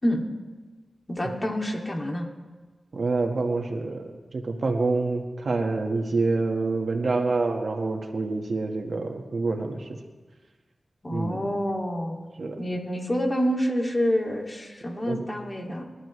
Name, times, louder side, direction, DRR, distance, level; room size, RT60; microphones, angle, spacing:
voice 1, 1.1-2.3 11.0-12.2 12.6-15.8, equal, 30° left, 0 dB, 2.6 m, -27 dB
voice 2, 2.9-9.9 11.1-11.4 12.4-12.6 15.1-15.2, right 3 dB, 70° right, 3 dB, 1.7 m, -27 dB
25.0 x 11.5 x 3.3 m, 1.3 s
cardioid pair, 50°, 0 cm